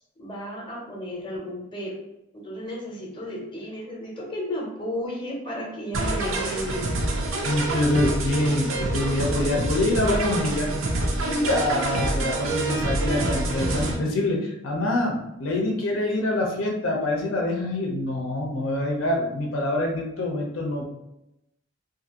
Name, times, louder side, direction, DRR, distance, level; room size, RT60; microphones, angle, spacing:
voice 1, 0.2-2.0 2.3-6.8, equal, 25° left, -2 dB, 0.7 m, -33 dB
sound 1, 5.9-14.0, right 2 dB, 85° right, 0.6 m, -26 dB
voice 2, 7.4-10.7 11.2-20.8, left 1 dB, 85° left, 0 dB, 0.6 m, -25 dB
2.7 x 2.5 x 2.8 m, 0.86 s
head